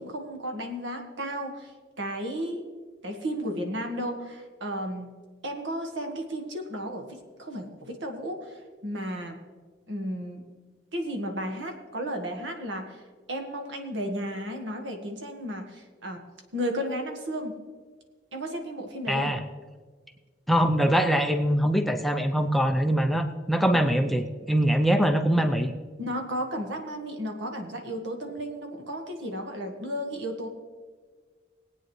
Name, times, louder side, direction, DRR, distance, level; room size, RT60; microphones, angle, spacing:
voice 1, 0.0-1.7 2.0-2.6 3.0-5.1 5.4-9.4 9.9-10.4 10.9-13.0 13.3-16.2 16.5-17.6 18.3-19.4 26.0-30.5, equal, 85° right, 4 dB, 1.6 m, -33 dB
voice 2, 19.1-19.4 20.5-25.7, equal, ahead, 5 dB, 0.6 m, -23 dB
20.0 x 8.9 x 3.2 m, 1.5 s
head